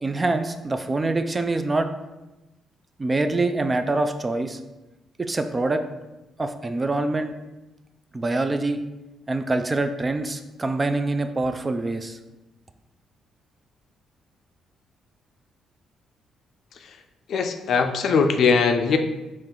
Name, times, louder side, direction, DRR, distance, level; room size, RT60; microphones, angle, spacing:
voice 1, 0.0-1.9 3.0-4.6 5.2-5.8 6.4-7.3 8.1-8.8 9.3-12.2, right 2 dB, 25° right, 8 dB, 0.3 m, -25 dB
voice 2, 16.7-17.0 17.3-19.0, left 5 dB, 65° left, 6 dB, 0.4 m, -21 dB
4.4 x 3.1 x 3.7 m, 1.0 s
cardioid pair, 90°, 0 cm